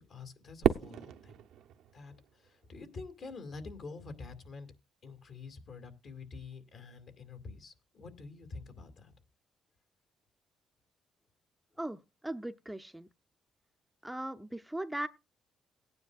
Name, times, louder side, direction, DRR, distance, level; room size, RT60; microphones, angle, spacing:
voice 1, 0.0-1.3 1.9-4.7 5.0-9.1, left 4 dB, 60° left, 2.2 m, -47 dB
Fireworks, 0.6-2.9, right 9 dB, 85° right, 0.7 m, -33 dB
voice 2, 11.8-13.1 14.0-15.1, right 1 dB, 5° right, 0.5 m, -38 dB
18.5 x 9.5 x 2.4 m
cardioid pair, 90°, 0 cm